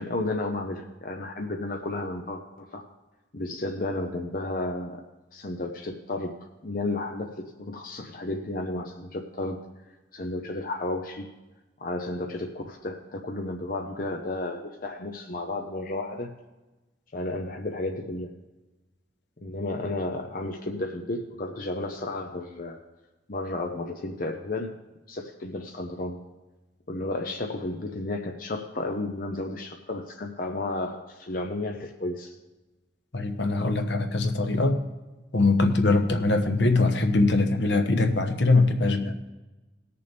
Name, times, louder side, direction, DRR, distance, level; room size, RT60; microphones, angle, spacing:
voice 1, 0.0-2.8 3.3-5.0 5.3-6.4 6.6-9.6 10.1-11.3 11.8-16.3 17.1-18.3 19.4-22.8 23.3-24.8 25.1-26.2 26.9-32.4, left 2 dB, 50° left, 2 dB, 0.8 m, -32 dB
voice 2, 33.1-34.8 35.3-39.1, left 2 dB, 70° left, 5 dB, 1.1 m, -22 dB
19.5 x 6.8 x 3.5 m, 1.1 s
head